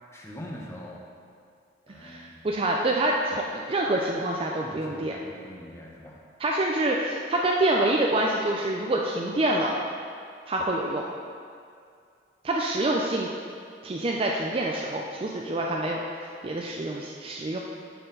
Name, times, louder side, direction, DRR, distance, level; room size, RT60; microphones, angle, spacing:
voice 1, 0.1-1.1 1.9-2.6 4.6-6.2, equal, 15° left, -2 dB, 0.8 m, -43 dB
voice 2, 2.0-5.2 6.4-9.8 10.5-11.1 12.4-13.3 13.8-16.0 16.4-17.6, right 1 dB, 30° right, -1 dB, 0.4 m, -26 dB
11.0 x 4.4 x 3.9 m, 2.3 s
head